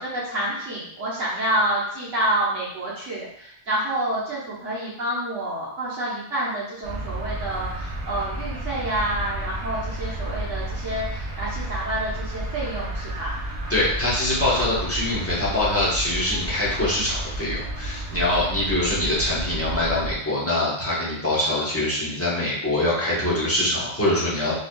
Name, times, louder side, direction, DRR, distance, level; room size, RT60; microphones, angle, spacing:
voice 1, 0.0-13.4, right 1 dB, 70° right, -7 dB, 1.5 m, -28 dB
sound 1, 6.8-20.1, right 1 dB, 40° right, 0.8 m, -32 dB
voice 2, 13.7-24.5, left 1 dB, 10° left, -8 dB, 1.1 m, -24 dB
4.9 x 2.7 x 2.3 m, 0.68 s
omnidirectional pair, 1.3 m